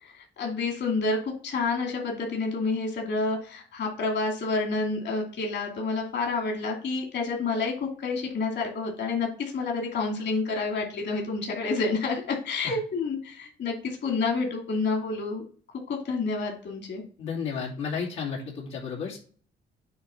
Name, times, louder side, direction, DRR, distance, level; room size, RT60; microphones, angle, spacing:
voice 1, 0.0-15.4 15.9-17.0, left 3 dB, 60° left, 1 dB, 2.7 m, -29 dB
voice 2, 17.2-19.2, left 6 dB, 85° left, -4 dB, 2.5 m, -32 dB
8.7 x 3.2 x 5.6 m, 0.43 s
cardioid pair, 90°, 20 cm